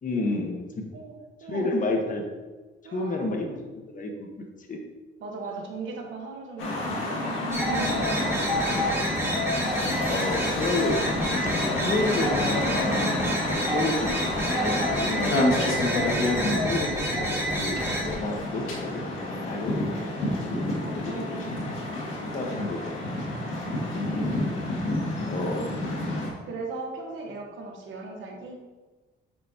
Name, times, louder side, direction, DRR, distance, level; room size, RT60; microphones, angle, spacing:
voice 1, 0.0-0.8 1.5-2.2 2.9-4.8 10.1-11.0 11.4-11.5 11.8-13.2 13.4-14.8 15.0-15.9 16.5-20.4 21.0-21.5 22.2-22.9 23.9-24.4 25.3-25.7, left 2 dB, 40° left, 2 dB, 1.2 m, -31 dB
voice 2, 2.8-3.3 5.2-9.4 16.1-16.8 20.8-21.7 22.3-22.8 23.7-24.5 26.4-28.6, right 3 dB, 75° right, 1 dB, 1.3 m, -39 dB
sound 1, 6.6-26.3, left 1 dB, 90° left, 1.7 m, -29 dB
sound 2, 7.5-18.1, equal, 15° right, 2.0 m, -28 dB
7.4 x 5.6 x 2.8 m, 1.3 s
cardioid pair, 90°, 20 cm